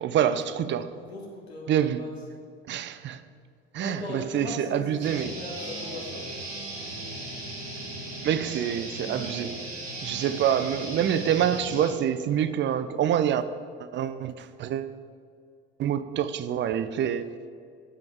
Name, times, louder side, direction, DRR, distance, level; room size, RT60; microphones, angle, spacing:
voice 1, 0.0-0.9 1.7-2.0 2.7-3.2 3.7-5.3 8.2-9.6 10.0-13.4 13.8-14.9 15.8-17.3, right 9 dB, 40° right, 0.5 m, -26 dB
voice 2, 0.9-2.1 3.8-6.3, left 2 dB, 90° left, 1.5 m, -39 dB
sound 1, 5.0-11.9, right 1 dB, 85° right, 1.9 m, -37 dB
9.8 x 5.2 x 4.6 m
hypercardioid pair, 65°, 31 cm